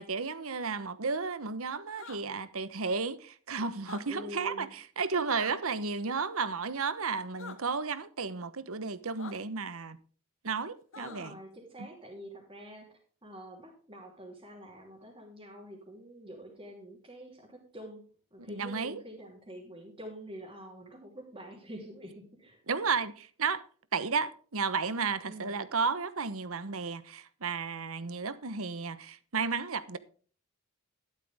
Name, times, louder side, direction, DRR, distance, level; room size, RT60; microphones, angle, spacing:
voice 1, 0.0-10.0 10.4-11.4 11.8-11.9 18.4-19.0 22.7-23.6 23.9-30.0, right 5 dB, 65° right, 1.1 m, -33 dB
sound 1, 1.9-2.2 3.8-4.0 5.3-5.6 7.4-7.6 9.2-9.3 10.9-11.4, left 4 dB, 65° left, 2.0 m, -45 dB
voice 2, 4.1-4.7 10.9-12.9 13.2-18.0 18.3-22.6 25.3-25.5, equal, 25° right, 3.2 m, -46 dB
12.5 x 12.0 x 3.6 m
head